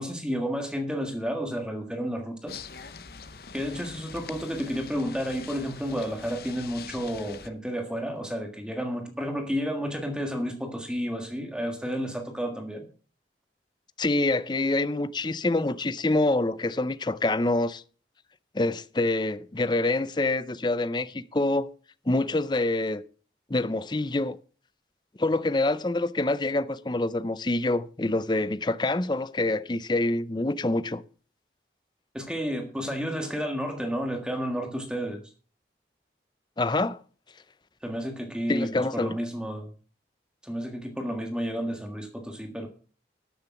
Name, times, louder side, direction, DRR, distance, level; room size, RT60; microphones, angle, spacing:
voice 1, 0.0-2.6 3.5-12.9 32.1-35.2 37.8-39.7 40.4-42.7, equal, 5° right, 1.6 m, -31 dB
sound 1, 2.5-7.5, left 6 dB, 60° left, 0.8 m, -44 dB
voice 2, 14.0-17.8 18.5-21.7 22.1-23.0 23.5-24.4 25.2-31.0 36.6-37.0 38.5-39.2, left 2 dB, 25° left, 0.5 m, -26 dB
13.0 x 6.7 x 5.9 m
head